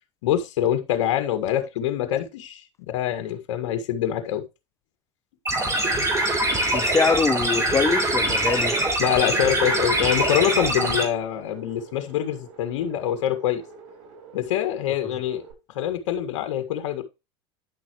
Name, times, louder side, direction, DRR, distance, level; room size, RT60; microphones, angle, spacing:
voice 1, 0.2-4.4 9.0-13.6 14.3-15.4 15.8-17.0, left 11 dB, 75° left, 1.8 m, -25 dB
sound 1, 5.5-11.0, right 1 dB, 20° right, 3.5 m, -23 dB
voice 2, 6.7-8.8, left 5 dB, 20° left, 0.8 m, -23 dB
sound 2, 6.7-15.5, right 4 dB, 65° right, 4.8 m, -47 dB
10.0 x 6.3 x 3.1 m
hypercardioid pair, 100°, 16 cm